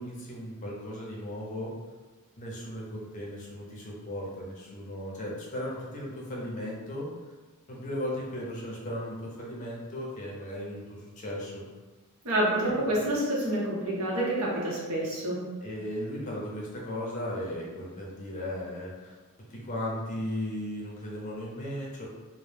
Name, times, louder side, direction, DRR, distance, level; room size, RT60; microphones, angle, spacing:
voice 1, 0.0-1.7 2.4-7.1 7.7-11.6 12.7-12.9 15.6-19.2 19.5-22.1, left 1 dB, 35° left, -4 dB, 0.6 m, -36 dB
voice 2, 12.2-15.4, right 1 dB, 75° right, -5 dB, 0.8 m, -28 dB
2.1 x 2.0 x 3.2 m, 1.3 s
head